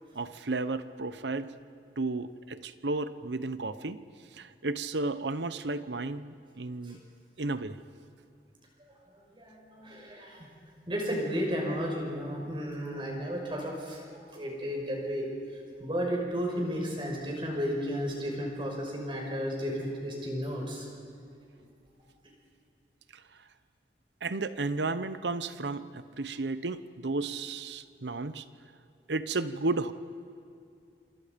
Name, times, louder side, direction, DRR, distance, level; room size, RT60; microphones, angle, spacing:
voice 1, 0.1-1.5 2.0-4.0 4.3-7.0 7.4-7.8 23.1-23.2 24.2-28.4 29.1-29.9, right 3 dB, 85° right, 13 dB, 0.9 m, -33 dB
voice 2, 9.4-10.5 10.9-15.3 15.8-20.9, equal, 30° right, -1 dB, 5.5 m, -33 dB
27.5 x 26.5 x 5.3 m, 2.5 s
head